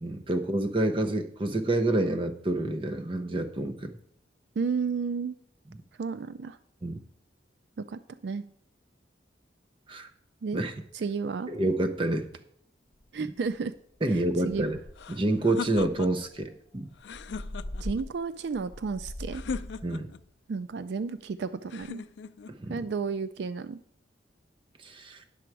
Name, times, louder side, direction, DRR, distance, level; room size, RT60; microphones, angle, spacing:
voice 1, 0.0-3.9 6.8-7.0 9.9-10.1 10.5-10.7 11.5-12.3 13.2-13.3 14.0-14.8 15.1-16.9 19.8-20.1 22.5-22.8 24.8-25.2, right 2 dB, 25° right, 7 dB, 0.7 m, -28 dB
voice 2, 4.6-5.4 6.0-6.6 7.9-8.4 10.4-10.6 10.9-11.5 13.1-13.7 14.1-14.7 17.8-19.4 20.5-22.0 22.7-23.8, right 5 dB, 70° right, 13 dB, 0.4 m, -32 dB
sound 1, 13.0-13.1 13.5-13.8 14.1-14.2 14.5-15.2 15.7-19.9, left 1 dB, 45° left, 0.9 m, -41 dB
sound 2, 15.0-16.3 17.0-18.0 19.3-20.2 21.7-22.6, left 5 dB, 75° left, 0.4 m, -38 dB
9.9 x 6.9 x 4.6 m, 0.67 s
head